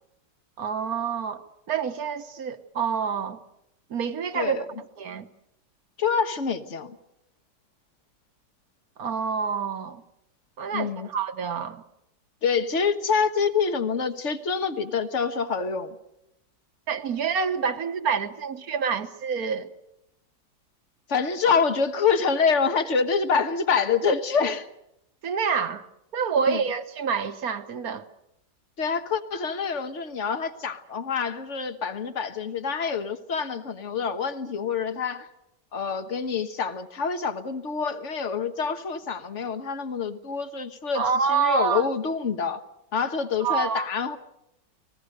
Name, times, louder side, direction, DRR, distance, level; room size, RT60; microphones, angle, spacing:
voice 1, 0.6-3.4 3.9-5.3 9.0-10.0 10.6-11.8 16.9-19.7 25.2-25.8 26.1-28.1 40.9-41.8 43.4-43.9, right 6 dB, 55° right, 1.6 m, -27 dB
voice 2, 4.3-4.7 6.0-7.0 10.7-11.1 12.4-16.0 21.1-24.7 26.5-26.6 28.8-35.3 35.7-41.0 41.3-42.6 42.9-44.2, left 5 dB, 45° left, 1.5 m, -26 dB
30.0 x 20.5 x 6.6 m
omnidirectional pair, 1.9 m